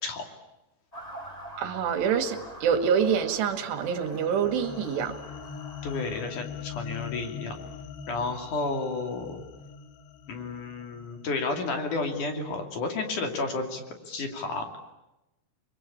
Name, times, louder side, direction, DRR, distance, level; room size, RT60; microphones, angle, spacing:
Motor vehicle (road) / Siren, 0.9-6.3, right 1 dB, 10° left, 3.6 m, -45 dB
voice 1, 1.6-5.1, right 7 dB, 85° right, 9 dB, 4.1 m, -26 dB
sound 1, 3.6-12.1, left 6 dB, 85° left, 3.9 m, -42 dB
voice 2, 5.8-7.6 8.1-9.4 10.3-14.7, left 3 dB, 50° left, 5 dB, 3.9 m, -31 dB
30.0 x 22.5 x 8.6 m, 0.98 s
omnidirectional pair, 4.8 m